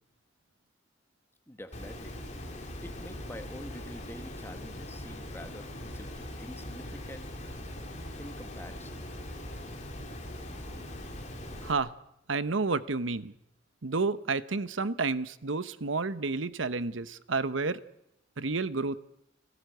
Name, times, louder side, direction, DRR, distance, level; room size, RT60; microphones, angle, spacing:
voice 1, 1.5-2.2 2.8-7.3 8.2-9.0, left 1 dB, 10° left, 7 dB, 1.5 m, -46 dB
Water, 1.7-11.7, left 1 dB, 40° left, 3.7 m, -41 dB
voice 2, 11.6-11.9 12.3-13.3 13.8-17.8 18.4-19.0, right 3 dB, 80° right, 14 dB, 1.0 m, -30 dB
30.0 x 13.5 x 8.0 m, 0.83 s
head